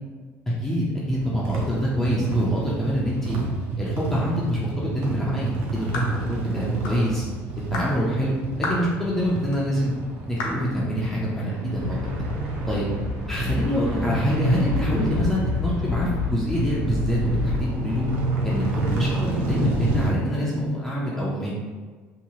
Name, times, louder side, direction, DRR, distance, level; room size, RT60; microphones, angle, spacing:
voice 1, 0.6-3.4 3.8-7.2 7.7-9.9 10.3-12.1 12.7-12.9 13.3-18.0 18.4-21.6, equal, 5° left, -6 dB, 0.3 m, -26 dB
sound 1, 1.1-20.1, right 2 dB, 55° right, 0.5 m, -29 dB
sound 2, 5.9-6.2 6.8-7.0 7.7-7.9 8.6-8.9 9.5-9.6 10.4-10.6, left 2 dB, 75° left, 0.6 m, -29 dB
sound 3, 11.7-17.6, left 4 dB, 80° right, 1.0 m, -30 dB
2.7 x 2.3 x 2.8 m, 1.4 s
cardioid pair, 170°, 5 cm